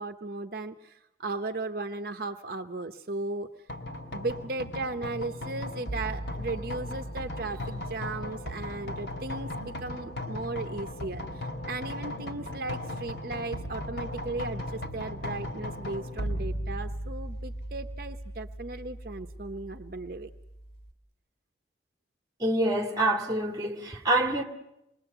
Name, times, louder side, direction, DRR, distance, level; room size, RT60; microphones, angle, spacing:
voice 1, 0.0-3.7 4.1-20.3, right 3 dB, 55° right, 0.8 m, -36 dB
sound 1, 3.7-20.9, equal, 80° left, 3.0 m, -37 dB
voice 2, 22.4-24.4, right 1 dB, 20° right, 2.1 m, -26 dB
27.0 x 21.5 x 8.0 m
head